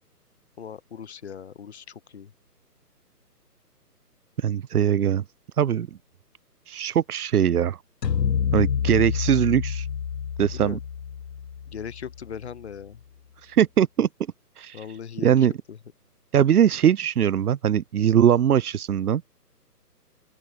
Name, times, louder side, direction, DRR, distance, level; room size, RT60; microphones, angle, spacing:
voice 1, 0.6-2.3 10.6-10.8 11.7-13.0 14.7-15.4 15.7-15.8, left 7 dB, 45° left, 0.9 m, -39 dB
voice 2, 4.4-5.2 5.5-5.9 6.7-7.8 8.5-9.9 10.4-10.8 13.4-14.1 14.6-15.5 16.3-19.2, right 9 dB, 65° right, 0.6 m, -21 dB
sound 1, 8.0-12.4, left 7 dB, 85° left, 0.8 m, -28 dB
open air
figure-of-eight pair, 150°, 48 cm